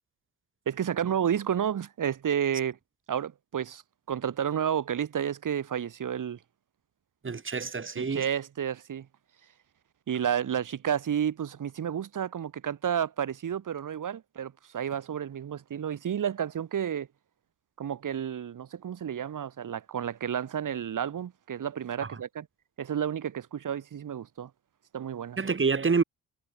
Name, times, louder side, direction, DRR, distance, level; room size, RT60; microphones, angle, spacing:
voice 1, 0.7-2.8 3.1-6.4 8.0-9.1 10.1-17.1 17.8-22.5 22.8-24.5 24.9-25.4, right 9 dB, 60° right, 5.4 m, -31 dB
voice 2, 7.2-8.2 22.0-22.1 25.4-26.0, right 5 dB, 35° right, 5.5 m, -27 dB
supercardioid pair, 65°, 35 cm